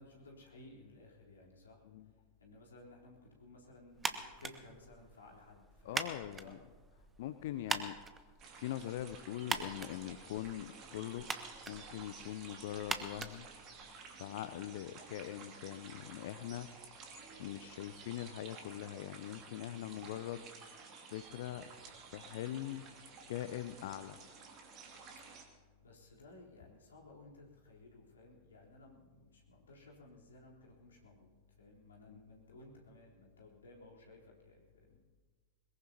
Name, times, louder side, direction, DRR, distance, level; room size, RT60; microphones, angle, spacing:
voice 1, 0.0-1.8 2.4-6.0 6.4-6.6 25.8-35.0, left 2 dB, 70° left, -2 dB, 3.7 m, -57 dB
sound 1, 4.0-14.2, right 4 dB, 15° right, 1.1 m, -43 dB
voice 2, 5.8-6.6 7.2-8.0 8.6-11.3 11.7-13.5 14.0-16.7 17.4-20.4 21.1-21.8 22.1-22.9 23.3-24.2 32.1-32.2, left 12 dB, 55° left, 12 dB, 0.6 m, -42 dB
sound 2, 8.4-25.4, right 4 dB, 35° right, 2.5 m, -53 dB
21.5 x 21.5 x 2.9 m, 1.4 s
figure-of-eight pair, 90°, 0 cm